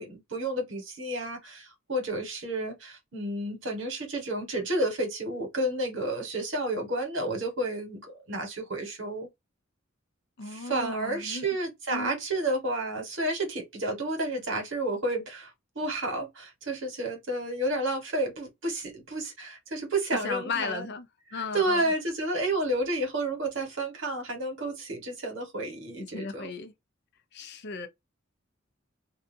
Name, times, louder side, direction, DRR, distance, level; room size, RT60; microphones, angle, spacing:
voice 1, 0.0-9.3 10.5-20.8 21.3-26.5, right 1 dB, 70° right, 1.3 m, -31 dB
voice 2, 10.4-11.5 11.9-12.1 20.2-21.9 26.0-26.7 27.3-27.9, left 4 dB, 55° left, 0.6 m, -36 dB
2.7 x 2.3 x 2.6 m
head